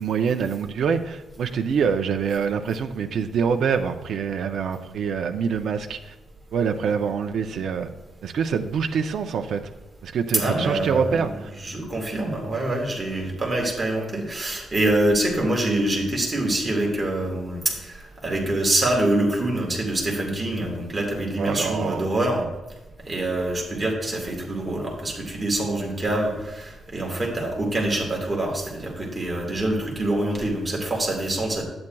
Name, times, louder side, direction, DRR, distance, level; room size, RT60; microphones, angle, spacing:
voice 1, 0.0-6.1 6.5-7.9 8.2-9.6 10.0-11.3 21.4-22.0, right 6 dB, 55° right, 5 dB, 0.4 m, -25 dB
voice 2, 10.3-11.3 11.6-22.5 23.0-31.6, right 1 dB, 20° right, -1 dB, 1.4 m, -25 dB
10.5 x 8.6 x 2.2 m, 1.1 s
wide cardioid pair, 180°, 0 cm